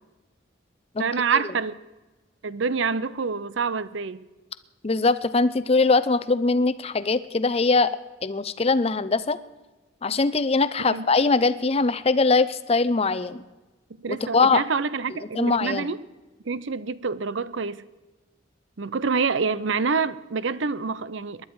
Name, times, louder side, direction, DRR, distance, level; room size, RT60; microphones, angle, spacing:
voice 1, 1.0-1.7 2.4-4.2 10.9-11.0 14.0-16.0 16.5-17.8 18.8-21.4, right 5 dB, 70° right, 0.6 m, -27 dB
voice 2, 4.8-7.9 8.2-9.4 10.0-13.4 14.1-14.6 15.3-15.9, left 3 dB, 30° left, 0.6 m, -22 dB
19.5 x 11.5 x 4.7 m
head